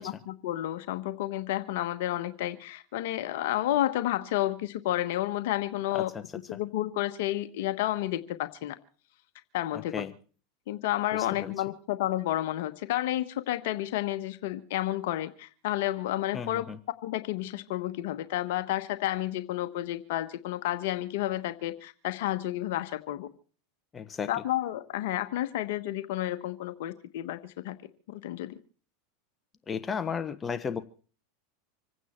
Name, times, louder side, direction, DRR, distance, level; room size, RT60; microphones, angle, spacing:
voice 1, 0.0-6.1 6.5-8.8 9.5-10.1 10.7-16.6 17.0-23.3 24.3-27.8 28.1-28.6, left 14 dB, 70° left, 9 dB, 1.1 m, -31 dB
voice 2, 9.7-10.1 11.1-11.5 16.3-16.8 23.9-24.3 29.7-30.8, left 6 dB, 20° left, 10 dB, 1.2 m, -34 dB
26.5 x 9.3 x 4.4 m, 0.42 s
hypercardioid pair, 110°, 0 cm